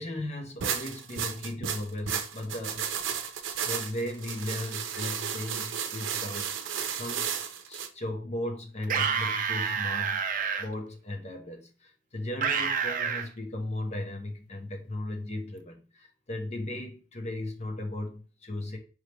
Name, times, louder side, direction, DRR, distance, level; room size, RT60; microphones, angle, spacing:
voice 1, 0.0-2.9 3.7-6.6 6.9-7.3 7.7-10.2 10.6-18.8, left 1 dB, 35° left, 0.8 m, -36 dB
sound 1, 0.6-7.9, right 8 dB, 85° right, 0.6 m, -33 dB
sound 2, 8.8-10.6 12.4-13.3, right 6 dB, 45° right, 0.5 m, -28 dB
4.7 x 3.3 x 2.9 m
head